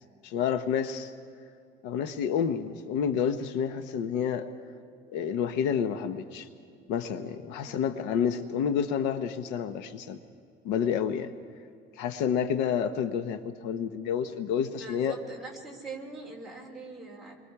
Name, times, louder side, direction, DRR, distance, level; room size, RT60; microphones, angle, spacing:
voice 1, 0.2-1.1 1.8-4.5 5.1-6.5 6.9-10.2 10.6-11.3 12.0-15.1, left 7 dB, 70° left, 9 dB, 1.0 m, -29 dB
voice 2, 14.8-17.4, right 3 dB, ahead, -4 dB, 3.2 m, -42 dB
28.5 x 23.0 x 4.8 m, 2.4 s
cardioid pair, 170°, 19 cm